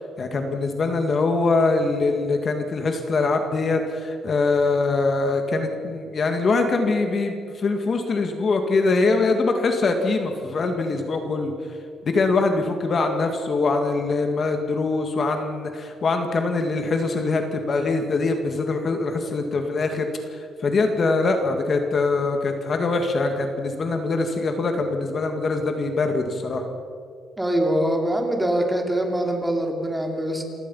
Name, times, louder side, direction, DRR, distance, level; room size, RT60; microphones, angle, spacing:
voice 1, 0.0-11.5 12.0-26.6, left 3 dB, 40° left, 5 dB, 2.1 m, -23 dB
voice 2, 27.4-30.4, right 1 dB, 10° right, 2 dB, 3.1 m, -23 dB
29.0 x 17.0 x 5.6 m, 2.3 s
cardioid pair, 125°, 0 cm